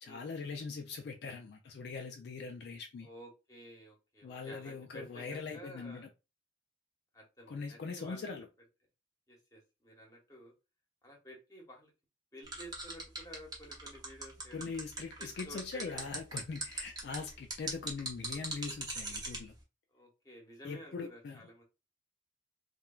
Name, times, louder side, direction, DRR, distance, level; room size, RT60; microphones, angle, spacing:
voice 1, 0.0-3.1 4.2-6.1 7.5-8.5 14.5-19.5 20.6-21.4, left 4 dB, 60° left, 0.3 m, -42 dB
voice 2, 3.0-6.1 7.1-8.3 9.3-10.5 11.0-11.9 12.3-14.7 15.2-16.0 19.9-21.6, equal, 20° left, 0.9 m, -52 dB
sound 1, 12.5-19.4, right 2 dB, 20° right, 0.7 m, -39 dB
3.0 x 2.2 x 2.3 m
head